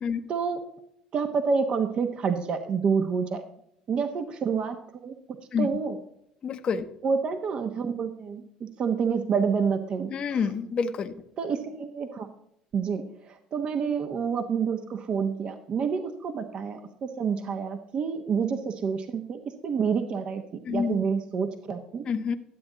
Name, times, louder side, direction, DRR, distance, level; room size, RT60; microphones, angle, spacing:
voice 1, 0.3-0.6 1.1-3.4 3.9-6.0 7.0-10.4 11.4-12.3 12.7-20.4 20.7-22.0, right 6 dB, 50° right, 7 dB, 1.1 m, -28 dB
voice 2, 6.4-6.8 10.1-11.1 20.7-21.0 22.0-22.4, left 6 dB, 45° left, 8 dB, 0.9 m, -27 dB
12.5 x 7.9 x 3.9 m, 0.74 s
supercardioid pair, 85°, 2 cm